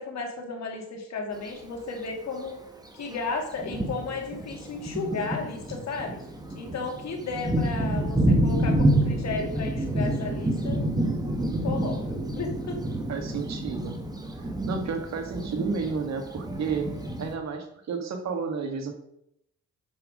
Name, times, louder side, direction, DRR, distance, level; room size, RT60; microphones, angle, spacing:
voice 1, 0.0-2.6 2.9-6.2 6.6-10.8 11.6-12.0 12.3-12.8, left 4 dB, 60° left, 2 dB, 2.2 m, -34 dB
Thunder, 1.3-1.5 2.4-2.5 3.1-3.2 3.6-17.3, right 1 dB, 15° right, 1.3 m, -28 dB
voice 2, 7.9-8.7 13.1-13.9 14.4-16.9 17.2-18.9, right 5 dB, 60° right, 5 dB, 1.8 m, -32 dB
7.4 x 6.0 x 5.1 m, 0.77 s
cardioid pair, 90°, 30 cm